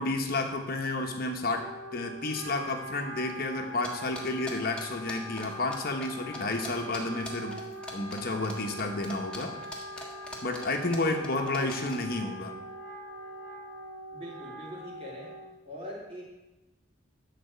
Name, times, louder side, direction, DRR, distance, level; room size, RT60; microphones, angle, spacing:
voice 1, 0.0-7.6 7.9-9.6 9.9-10.1 10.4-12.5, left 2 dB, 50° left, 3 dB, 1.0 m, -31 dB
Wind instrument woodwind instrument, 1.5-15.6, equal, 80° right, 1.7 m, -42 dB
sound 1, 3.8-5.8 6.0-6.1 6.3-12.0, left 1 dB, 5° left, 1.6 m, -42 dB
voice 2, 14.1-15.4 15.6-16.2, equal, 30° right, -4 dB, 3.0 m, -42 dB
12.0 x 4.1 x 8.1 m, 1.0 s
head